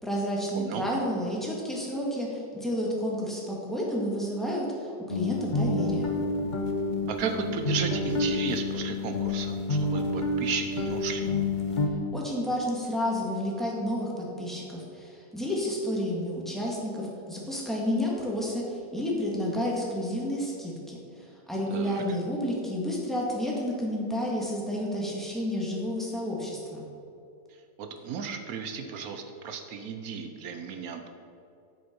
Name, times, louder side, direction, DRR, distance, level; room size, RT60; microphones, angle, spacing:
voice 1, 0.0-6.2 12.1-26.8, equal, ahead, -4 dB, 1.7 m, -30 dB
sound 1, 5.1-11.9, left 2 dB, 90° left, 0.4 m, -29 dB
voice 2, 7.1-11.3 21.7-22.2 27.8-31.1, right 6 dB, 65° right, 6 dB, 1.0 m, -34 dB
8.0 x 6.8 x 5.3 m, 2.7 s
omnidirectional pair, 2.0 m